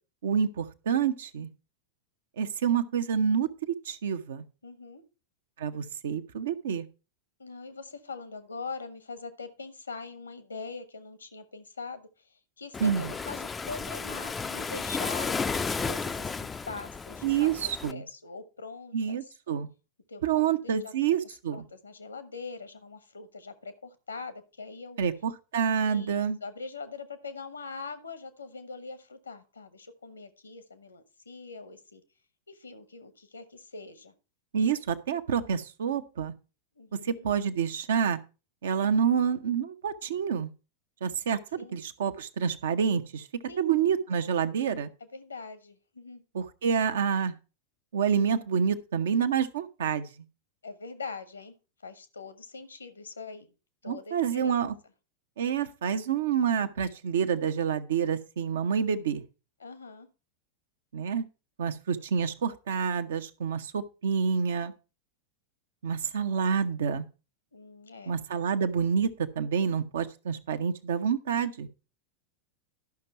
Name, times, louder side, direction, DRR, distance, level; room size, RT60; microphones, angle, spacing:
voice 1, 0.2-1.5 2.4-4.4 5.6-6.9 12.8-13.1 17.2-18.0 18.9-19.7 20.2-21.6 25.0-26.4 34.5-36.3 36.9-38.2 38.6-40.5 41.0-41.4 41.7-43.3 43.6-44.9 46.3-47.3 47.9-50.1 53.9-54.7 55.4-59.2 60.9-61.2 61.6-64.7 65.8-67.1 68.1-71.7, right 7 dB, 60° right, 0.8 m, -28 dB
voice 2, 4.6-5.0 7.4-19.2 20.1-20.9 21.5-25.0 25.9-32.0 32.5-34.1 36.7-37.3 41.6-41.8 43.5-43.6 45.1-46.2 50.6-51.5 51.8-53.5 53.8-54.6 59.6-60.1 67.5-68.1, left 4 dB, 75° left, 1.1 m, -42 dB
Waves surf, 12.7-17.9, left 4 dB, 15° left, 0.4 m, -33 dB
12.0 x 5.9 x 4.5 m
figure-of-eight pair, 90°, 0 cm